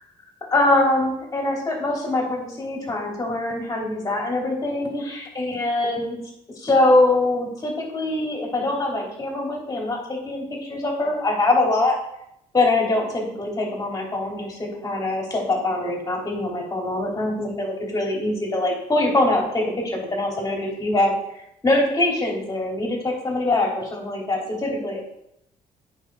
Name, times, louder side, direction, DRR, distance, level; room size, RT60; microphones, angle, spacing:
voice 1, 0.5-6.2 6.6-12.0 12.5-21.1 21.6-25.0, left 2 dB, 25° left, -1 dB, 3.5 m, -23 dB
9.2 x 5.6 x 4.7 m, 0.77 s
cardioid pair, 110°, 14 cm